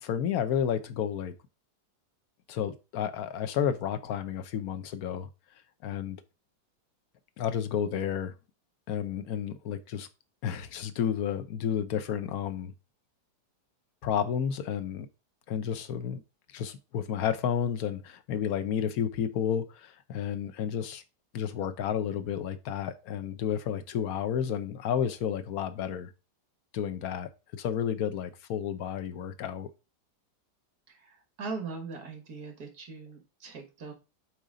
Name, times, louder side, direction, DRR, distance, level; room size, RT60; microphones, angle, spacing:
voice 1, 0.0-1.3 2.5-5.3 5.8-6.2 7.4-8.3 8.9-10.1 10.4-12.7 14.0-15.1 15.5-16.2 16.5-21.0 21.3-26.1 26.7-29.7, left 8 dB, 65° left, 1.2 m, -31 dB
voice 2, 30.9-33.9, right 4 dB, 60° right, 2.1 m, -40 dB
8.1 x 4.3 x 3.8 m
omnidirectional pair, 1.9 m